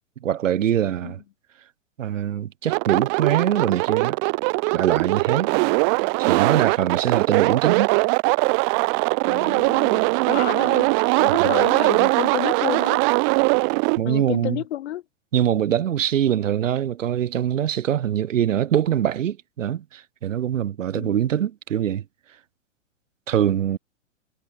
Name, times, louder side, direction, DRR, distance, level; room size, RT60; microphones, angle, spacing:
voice 1, 0.2-1.2 2.0-4.2 4.7-5.5 6.2-7.9 11.3-11.5 14.0-14.6 15.3-22.0 23.3-23.8, right 10 dB, 75° right, 0.8 m, -23 dB
sound 1, 2.7-14.0, right 40 dB or more, 30° right, 0.7 m, -21 dB
voice 2, 9.2-13.0 14.0-15.0 20.9-21.2, left 13 dB, 55° left, 1.1 m, -31 dB
hypercardioid pair, 115°, 38 cm